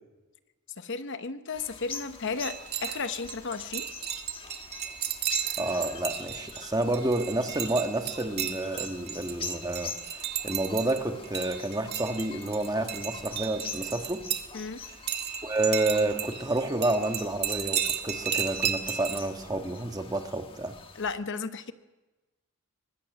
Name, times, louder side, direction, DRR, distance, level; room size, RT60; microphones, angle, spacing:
voice 1, 0.8-3.9 14.5-14.8 20.9-21.7, left 4 dB, 55° left, 11 dB, 0.9 m, -34 dB
sound 1, 1.5-21.2, left 5 dB, 25° left, 1.2 m, -45 dB
sound 2, 2.4-14.5 14.8-19.2, right 9 dB, 45° right, 1.7 m, -34 dB
voice 2, 5.6-14.2 15.4-20.8, right 2 dB, 15° right, 5 dB, 1.4 m, -29 dB
24.0 x 20.5 x 6.2 m, 1.1 s
head